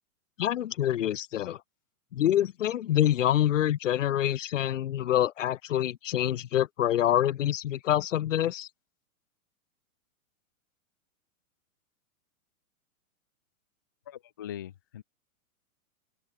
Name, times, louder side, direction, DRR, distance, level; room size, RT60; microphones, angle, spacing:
voice 1, 0.4-1.6 2.1-8.7, left 11 dB, 60° left, 2.2 m, -26 dB
voice 2, 14.1-15.0, left 10 dB, 15° left, 0.5 m, -41 dB
open air
supercardioid pair, 180°, 43 cm